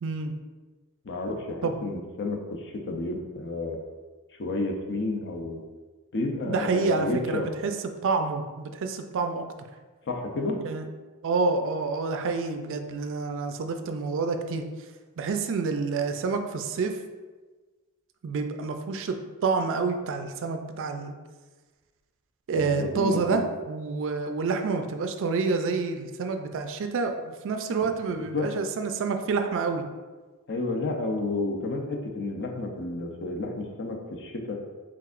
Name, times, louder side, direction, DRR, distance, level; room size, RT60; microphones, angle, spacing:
voice 1, 0.0-0.3 1.6-1.8 6.4-7.8 8.0-9.4 10.6-10.9 11.2-14.6 15.2-17.0 18.2-19.2 19.4-21.1 22.5-23.4 23.7-29.8, right 4 dB, 60° right, 6 dB, 0.4 m, -28 dB
voice 2, 1.0-3.8 4.4-5.6 6.1-7.5 10.0-10.6 22.5-23.4 28.2-28.5 30.5-34.6, left 2 dB, 55° left, 3 dB, 0.6 m, -31 dB
4.6 x 3.6 x 2.5 m, 1.3 s
head